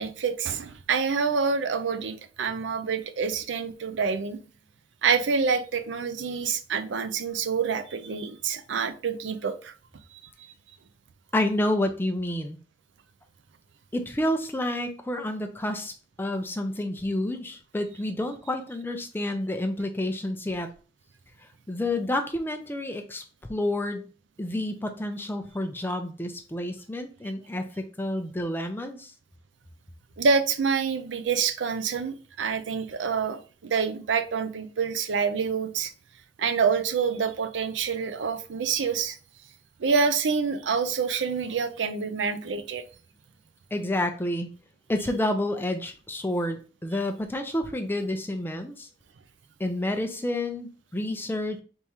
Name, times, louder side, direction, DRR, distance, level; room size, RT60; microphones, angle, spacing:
voice 1, 0.0-4.4 5.0-9.7 30.2-35.9 36.4-39.2 39.8-42.8, right 5 dB, 85° right, 0.5 m, -27 dB
voice 2, 11.3-12.6 13.9-15.9 16.2-20.7 21.4-23.2 23.5-24.1 24.4-29.1 43.7-44.5 44.9-48.9 49.6-51.6, left 1 dB, 10° left, 0.5 m, -29 dB
4.2 x 3.6 x 3.0 m
head